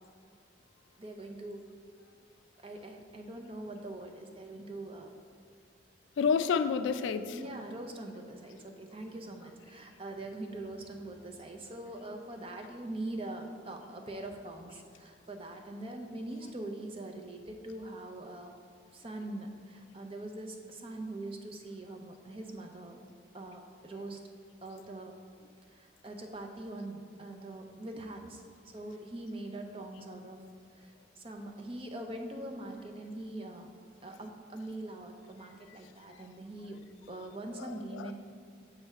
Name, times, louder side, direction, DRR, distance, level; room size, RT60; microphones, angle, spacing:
voice 1, 1.0-1.6 2.6-5.1 7.3-18.5 18.9-23.0 23.3-24.2 24.6-25.1 25.7-28.4 28.7-30.4 30.7-33.7 34.0-38.1, right 1 dB, 30° right, 4 dB, 0.5 m, -43 dB
voice 2, 6.2-7.4 36.1-36.2 37.6-38.1, left 6 dB, 80° left, 11 dB, 0.3 m, -30 dB
7.0 x 3.5 x 5.4 m, 2.3 s
head